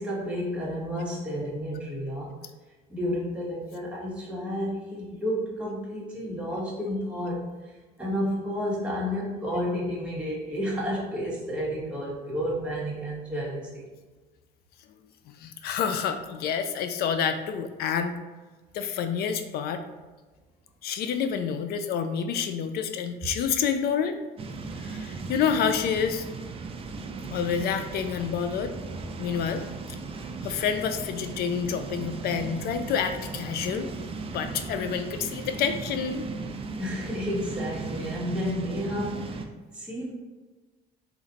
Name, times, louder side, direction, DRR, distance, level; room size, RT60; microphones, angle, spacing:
voice 1, 0.0-2.3 2.9-7.4 8.0-13.8 36.8-39.4 39.7-40.1, equal, 5° right, -6 dB, 1.3 m, -31 dB
voice 2, 15.4-18.1 18.7-19.8 20.8-24.2 24.8-26.2 27.3-28.7 29.2-29.7 30.4-33.9 34.3-36.3, left 7 dB, 70° left, 8 dB, 0.4 m, -28 dB
sound 1, 24.4-39.4, right 4 dB, 35° right, 0.4 m, -37 dB
4.1 x 2.5 x 3.9 m, 1.3 s
cardioid pair, 110°, 17 cm